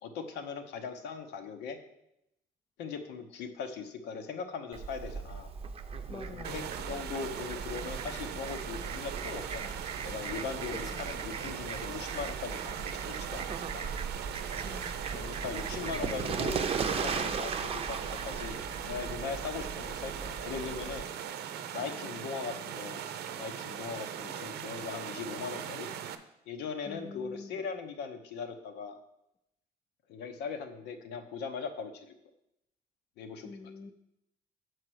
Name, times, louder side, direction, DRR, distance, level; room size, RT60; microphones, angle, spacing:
voice 1, 0.0-1.8 2.8-5.5 6.3-13.9 15.1-21.1 21.7-23.0 23.4-25.9 26.5-29.0 30.1-32.1 33.2-33.7, left 5 dB, 85° left, 7 dB, 1.0 m, -40 dB
Fowl, 4.7-21.0, right 5 dB, 35° right, 0.7 m, -38 dB
voice 2, 6.1-6.7 10.7-11.1 14.6-15.0 26.9-27.6 33.4-33.9, left 4 dB, 20° left, 11 dB, 0.5 m, -46 dB
sound 1, 6.4-26.2, right 9 dB, 75° right, 0.7 m, -40 dB
6.7 x 4.7 x 6.3 m, 0.83 s
cardioid pair, 110°, 17 cm